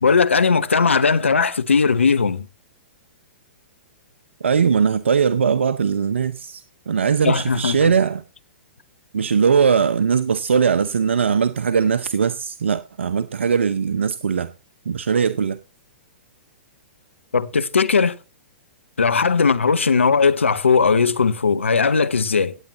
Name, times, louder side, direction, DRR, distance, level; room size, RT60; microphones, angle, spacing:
voice 1, 0.0-2.5 7.2-7.9 17.3-18.1 19.0-22.6, left 5 dB, 85° left, 1.0 m, -18 dB
voice 2, 4.4-8.2 9.1-14.5 14.9-15.6, right 6 dB, 75° right, 0.7 m, -20 dB
17.0 x 9.0 x 3.0 m
hypercardioid pair, 115°, 7 cm